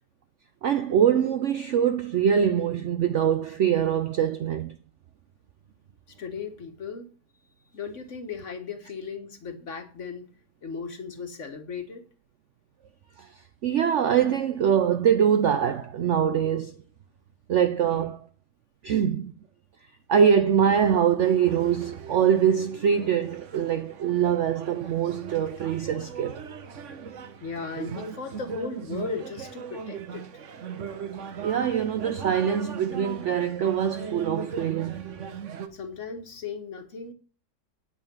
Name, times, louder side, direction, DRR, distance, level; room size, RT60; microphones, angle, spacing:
voice 1, 0.6-4.7 13.2-13.3 13.6-16.8 17.5-18.2 18.8-19.3 20.1-26.4 31.4-35.1, right 8 dB, 65° right, 0.7 m, -23 dB
voice 2, 6.2-7.1 7.7-10.3 10.6-12.0 17.9-18.0 27.4-30.3 35.7-37.1, left 5 dB, 45° left, 1.6 m, -37 dB
sound 1, 21.2-35.7, right 6 dB, 50° right, 1.1 m, -39 dB
9.3 x 5.6 x 7.3 m
omnidirectional pair, 1.8 m